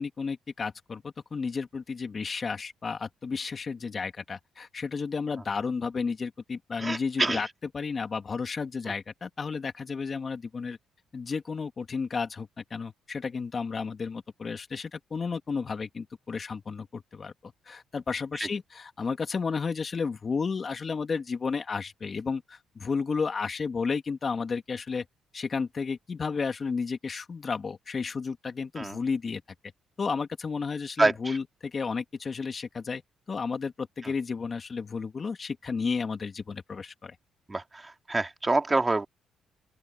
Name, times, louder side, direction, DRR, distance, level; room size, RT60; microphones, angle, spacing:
voice 1, 0.0-7.5 7.7-10.8 11.1-25.0 25.3-29.4 30.0-33.0 33.3-37.2, left 5 dB, 40° left, 2.6 m, -32 dB
voice 2, 6.8-7.5 18.4-18.5 28.8-29.0 31.0-31.4 34.0-34.1 37.5-39.1, right 2 dB, 20° right, 2.7 m, -27 dB
open air
cardioid pair, 90°, 0 cm